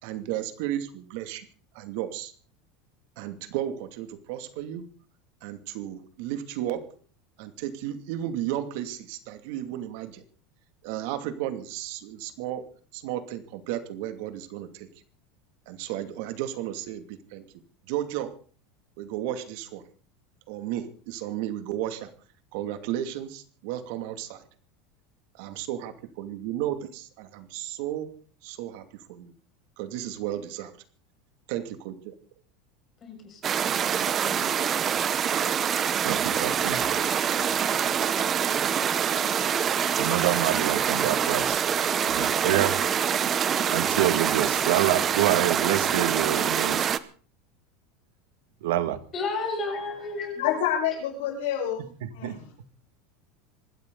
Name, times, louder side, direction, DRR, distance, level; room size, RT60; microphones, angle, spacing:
voice 1, 0.0-1.5 1.7-2.3 3.2-4.8 5.4-6.8 7.4-10.2 10.8-12.6 12.9-14.9 15.7-17.4 17.9-18.3 19.0-19.8 20.5-22.1 22.5-24.4 25.3-28.1 28.4-29.3 29.8-30.7 31.5-32.1, right 12 dB, 60° right, 9 dB, 2.5 m, -33 dB
voice 2, 33.0-34.5 49.1-50.6, left 3 dB, 25° left, 3 dB, 6.6 m, -34 dB
sound 1, 33.4-47.0, right 8 dB, 25° right, 0.9 m, -25 dB
sound 2, 36.0-46.7, left 2 dB, 5° left, 5.7 m, -42 dB
voice 3, 36.0-36.8 39.9-41.6 42.0-42.8 43.7-46.9 48.6-49.0 52.0-52.4, right 13 dB, 80° right, 10 dB, 2.2 m, -27 dB
voice 4, 50.4-51.8 52.1-52.5, left 10 dB, 85° left, -3 dB, 7.0 m, -28 dB
26.5 x 13.0 x 4.0 m, 0.42 s
supercardioid pair, 165°, 0 cm